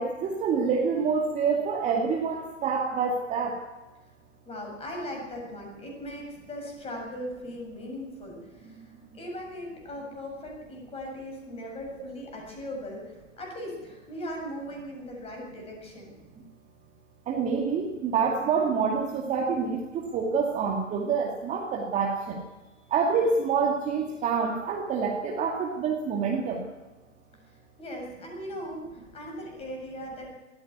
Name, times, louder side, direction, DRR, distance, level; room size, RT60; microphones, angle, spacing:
voice 1, 0.0-3.6 17.3-22.4 22.9-26.6, right 5 dB, 20° right, 0 dB, 2.2 m, -27 dB
voice 2, 4.5-16.1 27.5-30.3, equal, 15° left, 1 dB, 7.3 m, -39 dB
21.0 x 15.0 x 9.6 m, 1.2 s
figure-of-eight pair, 115°, 38 cm